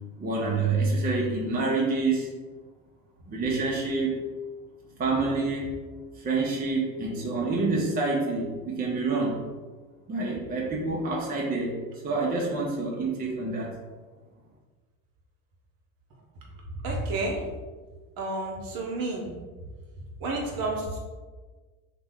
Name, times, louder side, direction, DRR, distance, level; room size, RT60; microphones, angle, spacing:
voice 1, 0.2-2.3 3.3-4.1 5.0-5.7 6.2-9.4 10.1-11.7 12.0-13.8, right 3 dB, 20° right, -3 dB, 0.6 m, -27 dB
voice 2, 16.8-17.4 18.2-19.3 20.2-21.0, right 2 dB, 55° right, -1 dB, 0.9 m, -30 dB
2.9 x 2.2 x 3.5 m, 1.4 s
supercardioid pair, 85°, 42 cm